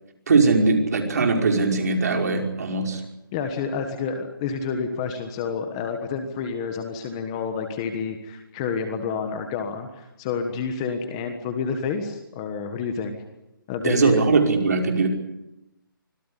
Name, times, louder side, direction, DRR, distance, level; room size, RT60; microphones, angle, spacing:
voice 1, 0.3-3.0 13.8-15.1, right 4 dB, 45° right, 3 dB, 5.5 m, -20 dB
voice 2, 3.3-13.1 13.7-14.2, left 5 dB, 15° left, 6 dB, 1.4 m, -29 dB
25.5 x 18.5 x 9.9 m, 0.90 s
hypercardioid pair, 175°, 12 cm